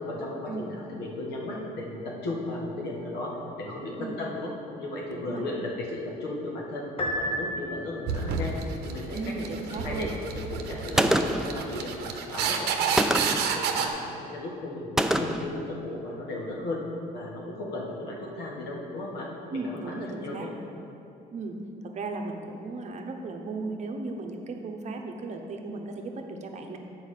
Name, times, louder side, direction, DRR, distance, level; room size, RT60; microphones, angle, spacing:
voice 1, 0.1-4.5 4.8-8.6 8.8-16.8 17.1-20.5, left 2 dB, 80° left, -2 dB, 1.6 m, -36 dB
voice 2, 5.1-5.4 9.1-10.1 19.5-20.5 21.3-21.6 21.8-26.8, right 3 dB, 45° right, 3 dB, 0.9 m, -35 dB
Piano, 7.0-8.2, equal, 35° left, 1.0 m, -31 dB
sound 1, 8.1-13.9, right 6 dB, 75° right, 0.7 m, -30 dB
Gunshot gunfire, 11.0-11.6 13.0-13.5 15.0-15.5, right 1 dB, 5° right, 0.3 m, -24 dB
7.8 x 4.8 x 6.5 m, 2.8 s
cardioid pair, 110°, 17 cm